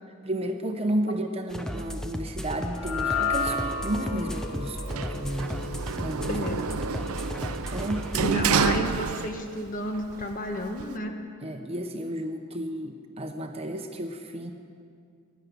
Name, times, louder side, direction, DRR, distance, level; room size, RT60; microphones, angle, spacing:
voice 1, 0.2-5.6 6.0-6.4 7.7-8.4 11.4-14.5, right 1 dB, 30° right, 5 dB, 0.8 m, -32 dB
sound 1, 1.5-8.8, equal, 5° left, 0.6 m, -35 dB
sound 2, 2.6-9.0, left 4 dB, 90° left, 1.6 m, -34 dB
Sliding door, 4.9-9.7 10.0-11.0, right 6 dB, 85° right, 0.5 m, -29 dB
voice 2, 6.3-6.6 8.2-11.1, left 1 dB, 40° left, 4 dB, 1.3 m, -31 dB
16.0 x 10.5 x 6.8 m, 2.2 s
head